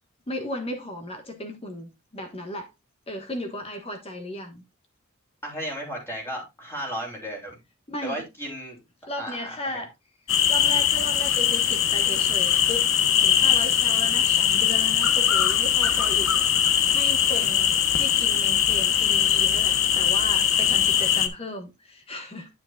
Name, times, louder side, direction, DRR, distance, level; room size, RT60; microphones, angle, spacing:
voice 1, 0.3-2.7 3.1-4.6 7.9-8.2 9.1-9.9 10.5-12.8 13.2-22.5, left 1 dB, 25° left, 1.3 m, -35 dB
voice 2, 5.4-7.6 8.0-8.8 9.2-9.8 17.3-17.5, equal, 10° left, 3.2 m, -34 dB
sound 1, 10.3-21.3, left 9 dB, 60° left, 0.9 m, -21 dB
9.5 x 7.7 x 2.3 m
head